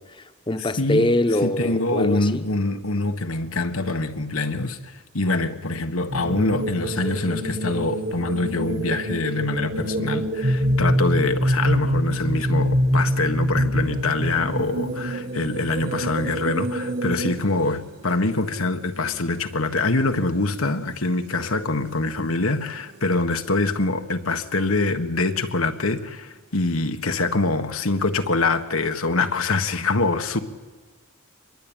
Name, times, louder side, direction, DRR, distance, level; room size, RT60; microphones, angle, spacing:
voice 1, 0.0-2.5, left 1 dB, 25° left, 1.1 m, -24 dB
voice 2, 0.8-1.1 1.4-30.4, left 3 dB, 90° left, 1.6 m, -24 dB
sound 1, 6.1-17.4, equal, 50° right, 2.0 m, -25 dB
sound 2, 13.7-23.2, right 2 dB, 90° right, 5.4 m, -50 dB
24.5 x 21.5 x 9.1 m
head